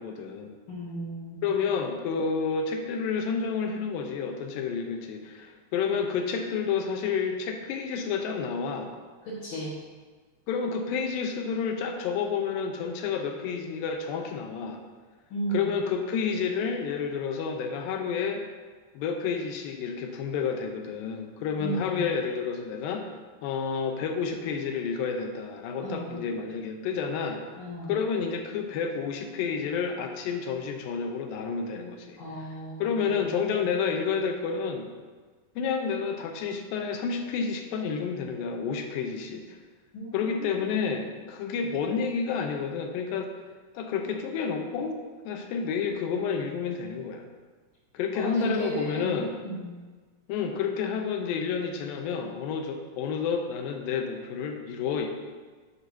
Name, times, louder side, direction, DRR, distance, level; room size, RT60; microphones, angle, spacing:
voice 1, 0.0-0.5 1.4-8.9 10.5-14.8 15.5-18.4 18.9-23.1 23.4-27.4 27.9-32.2 32.8-34.9 35.6-39.6 40.1-43.3 43.8-47.3 47.9-49.3 50.3-55.1, left 6 dB, 80° left, 4 dB, 2.3 m, -30 dB
voice 2, 0.7-1.6 9.2-9.8 15.3-15.7 21.6-22.1 25.8-26.3 27.6-28.0 32.2-33.6 39.9-40.9 48.1-49.7, right 2 dB, 65° left, -9 dB, 2.2 m, -35 dB
9.7 x 5.8 x 2.7 m, 1.4 s
omnidirectional pair, 4.3 m